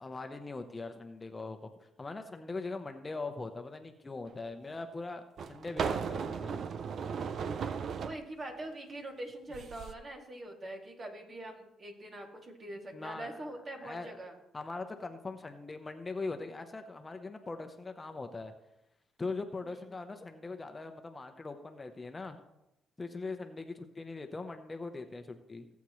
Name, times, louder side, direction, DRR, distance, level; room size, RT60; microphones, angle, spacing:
voice 1, 0.0-5.2 5.5-6.6 12.9-13.3 13.8-14.1 14.5-18.5 19.2-22.4 23.0-25.7, left 3 dB, 25° left, 6 dB, 1.0 m, -41 dB
sound 1, 4.3-4.4 5.4-8.2 9.5-9.9, right 6 dB, 60° right, 0.6 m, -36 dB
voice 2, 8.0-14.4 19.6-19.8, right 1 dB, 40° right, 1 dB, 2.6 m, -43 dB
18.5 x 8.4 x 3.2 m, 0.90 s
cardioid pair, 90°, 0 cm